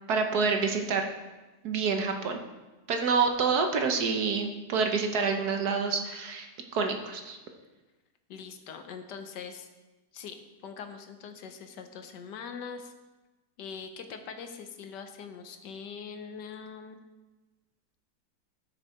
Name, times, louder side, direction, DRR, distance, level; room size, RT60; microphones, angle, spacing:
voice 1, 0.1-1.0 1.6-2.4 2.9-7.4, right 5 dB, 65° right, 4 dB, 1.4 m, -27 dB
voice 2, 8.3-9.7 10.1-12.9 13.6-17.0, left 6 dB, 70° left, 7 dB, 1.4 m, -42 dB
13.5 x 6.4 x 4.3 m, 1.1 s
omnidirectional pair, 2.0 m